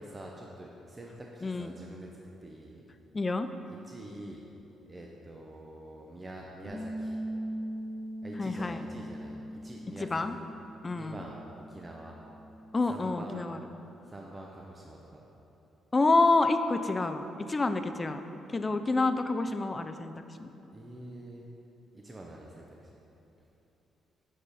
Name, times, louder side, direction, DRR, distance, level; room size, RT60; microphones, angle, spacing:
voice 1, 0.0-2.1 2.4-2.8 3.8-4.4 4.9-7.2 8.2-10.4 10.9-11.4 11.7-12.2 12.9-13.5 14.0-15.3 20.7-21.4 21.9-23.0, right 1 dB, 25° right, -1 dB, 0.6 m, -46 dB
voice 2, 1.4-1.8 3.1-3.5 8.4-8.8 10.1-10.3 10.8-11.2 12.7-13.6 15.9-18.2 18.5-20.1 20.4-20.5, left 3 dB, 25° left, 9 dB, 0.4 m, -28 dB
Bass guitar, 6.7-12.9, equal, 75° right, 1.2 m, -40 dB
7.7 x 4.8 x 4.1 m, 3.0 s
cardioid pair, 90°, 0 cm